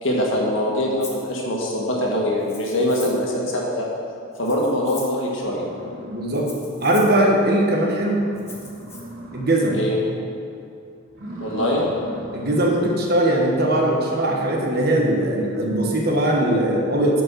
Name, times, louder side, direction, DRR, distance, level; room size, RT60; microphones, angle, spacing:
voice 1, 0.0-3.8 4.4-5.6 9.7-10.0 11.4-11.8 15.7-15.8, left 1 dB, 65° left, -2 dB, 1.7 m, -23 dB
Rattle (instrument), 1.0-1.3 2.4-3.3 4.3-5.2 6.3-7.2 8.4-9.0, left 3 dB, 10° left, 0.9 m, -40 dB
sound 1, 5.4-6.8 7.2-7.3 7.7-7.8 8.0-9.9 10.2-10.6 11.1-13.1, right 1 dB, 90° right, 2.1 m, -38 dB
voice 2, 6.1-6.5 6.8-8.3 9.3-9.7 12.3-17.2, right 1 dB, 50° right, -1 dB, 1.3 m, -20 dB
9.6 x 5.0 x 6.3 m, 2.4 s
head